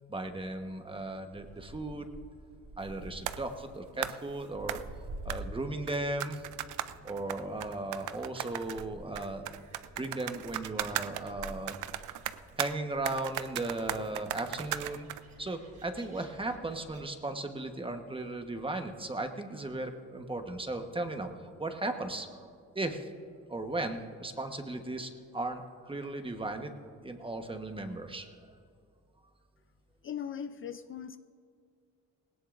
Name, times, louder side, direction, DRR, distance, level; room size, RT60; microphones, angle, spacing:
voice 1, 0.1-2.1 2.8-4.8 5.2-6.5 7.0-9.5 10.0-11.8 12.6-15.1 15.4-22.5 22.7-23.1 23.5-26.7 27.0-28.3, right 2 dB, 15° right, 6 dB, 1.2 m, -36 dB
Gull seagull, 1.3-17.0, right 1 dB, 65° right, 4.0 m, -50 dB
sound 1, 3.3-3.4 4.0-4.2 4.7-4.8 5.3-5.4 5.9-8.8 9.1-12.7 13.0-15.2, right 13 dB, 85° right, 0.6 m, -37 dB
voice 2, 30.0-31.2, left 8 dB, 45° left, 11 dB, 0.5 m, -39 dB
19.0 x 17.5 x 2.6 m, 2.3 s
cardioid pair, 90°, 30 cm